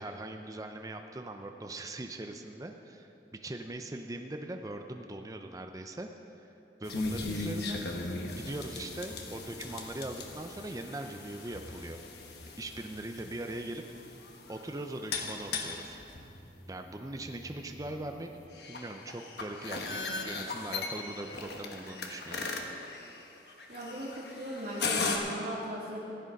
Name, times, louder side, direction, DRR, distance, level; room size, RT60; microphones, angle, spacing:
voice 1, 0.0-3.1 3.4-6.1 6.4-6.5 6.8-7.8 8.3-12.0 12.6-16.2 16.7-18.3 18.7-22.7, right 1 dB, 20° right, 4 dB, 0.5 m, -41 dB
sound 1, 6.8-25.2, left 3 dB, 70° left, 1.2 m, -39 dB
voice 2, 23.7-26.1, equal, 55° right, -8 dB, 1.8 m, -38 dB
15.0 x 8.9 x 5.3 m, 2.8 s
head